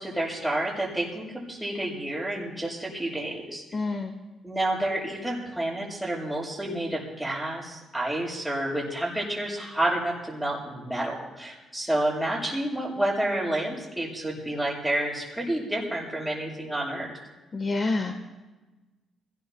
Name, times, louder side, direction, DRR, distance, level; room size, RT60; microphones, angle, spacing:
voice 1, 0.0-3.6 4.4-17.1, right 1 dB, 5° right, -4 dB, 6.9 m, -29 dB
voice 2, 3.7-4.1 17.5-18.1, left 3 dB, 35° left, 5 dB, 1.2 m, -27 dB
30.0 x 18.5 x 2.2 m, 1.2 s
cardioid pair, 90°, 0 cm